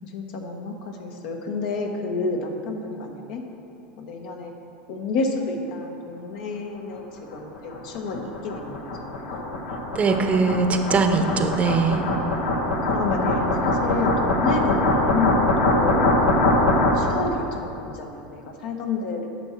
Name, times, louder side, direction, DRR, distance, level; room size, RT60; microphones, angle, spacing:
voice 1, 0.0-3.4 4.0-4.5 4.9-9.7 12.9-16.1 16.7-19.3, left 3 dB, 70° left, 3 dB, 1.1 m, -30 dB
sound 1, 7.3-17.3, left 1 dB, 85° left, 1.1 m, -23 dB
voice 2, 9.9-12.1, right 4 dB, 30° right, 6 dB, 0.7 m, -21 dB
9.7 x 5.9 x 4.5 m, 2.8 s
hypercardioid pair, 100°, 5 cm